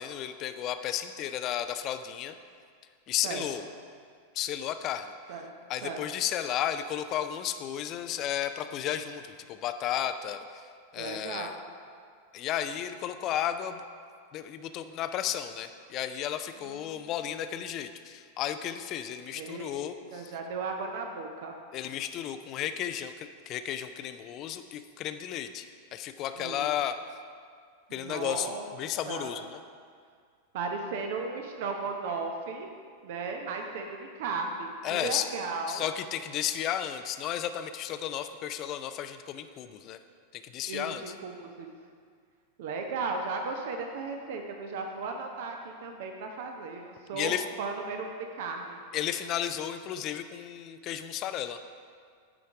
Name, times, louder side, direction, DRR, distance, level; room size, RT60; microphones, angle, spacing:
voice 1, 0.0-2.4 3.1-3.6 4.3-5.1 5.7-10.6 10.9-11.6 12.3-13.8 14.3-20.3 21.7-25.7 25.9-27.0 27.9-29.6 34.8-35.3 35.7-40.0 40.3-41.1 47.1-47.5 48.9-51.6, left 10 dB, 35° left, 10 dB, 0.4 m, -33 dB
voice 2, 10.9-11.6 16.6-17.1 19.3-21.5 26.3-26.6 27.9-28.7 29.1-29.4 30.5-32.7 33.0-35.8 40.7-41.7 42.6-47.3 47.6-48.8, right 4 dB, 50° right, 3 dB, 0.8 m, -36 dB
9.7 x 5.2 x 4.8 m, 2.1 s
figure-of-eight pair, 90°, 0 cm